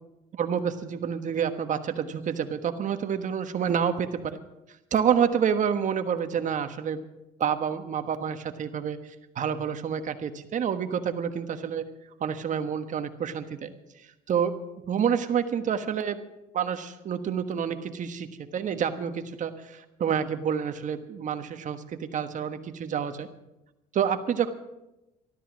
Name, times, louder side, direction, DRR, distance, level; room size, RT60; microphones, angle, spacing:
voice 1, 0.3-4.4 4.9-7.0 7.4-9.0 9.3-11.8 12.2-13.7 14.3-14.6 14.9-16.2 16.5-23.3 23.9-24.5, right 7 dB, 50° right, 8 dB, 1.3 m, -28 dB
13.0 x 12.5 x 6.2 m, 0.96 s
cardioid pair, 110°, 17 cm